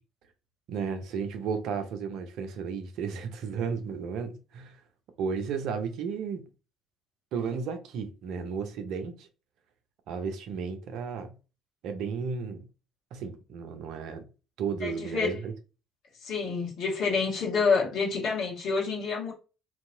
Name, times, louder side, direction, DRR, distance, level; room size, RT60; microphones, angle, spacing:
voice 1, 0.7-4.8 5.2-6.5 7.3-9.3 10.1-11.3 11.8-12.7 13.1-14.3 14.6-15.5, right 6 dB, 65° right, 0.6 m, -33 dB
voice 2, 14.8-15.4 16.2-19.3, left 5 dB, 60° left, 1.6 m, -28 dB
3.0 x 2.8 x 2.7 m
hypercardioid pair, 55°, 0 cm